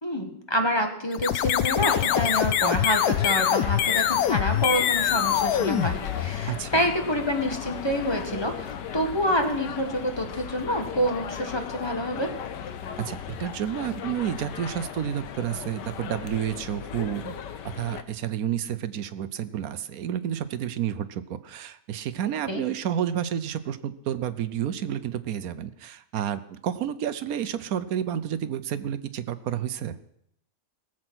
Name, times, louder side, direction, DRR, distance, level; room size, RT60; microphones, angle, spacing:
voice 1, 0.0-12.3 22.5-22.6, equal, 15° left, 4 dB, 1.2 m, -27 dB
sound 1, 1.1-6.6, left 11 dB, 70° left, 1.1 m, -24 dB
sound 2, 1.8-18.0, left 8 dB, 85° left, 1.5 m, -36 dB
voice 2, 6.5-6.8 13.0-17.3 17.7-30.0, right 10 dB, 65° right, 13 dB, 1.1 m, -30 dB
18.0 x 7.6 x 6.1 m, 0.74 s
omnidirectional pair, 1.8 m